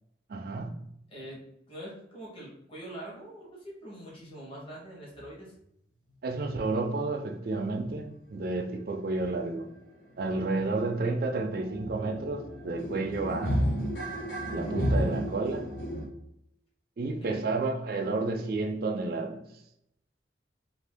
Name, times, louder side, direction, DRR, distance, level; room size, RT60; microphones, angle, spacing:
voice 1, 0.3-0.8 6.2-9.7 10.2-13.6 14.5-15.7 17.0-19.4, right 3 dB, 55° right, 0.4 m, -31 dB
voice 2, 1.1-1.4 1.7-5.5 17.1-17.4, right 1 dB, 30° left, 1.0 m, -44 dB
sound 1, 9.6-9.8 10.0-16.1, equal, 65° left, 1.3 m, -32 dB
2.8 x 2.6 x 3.5 m
head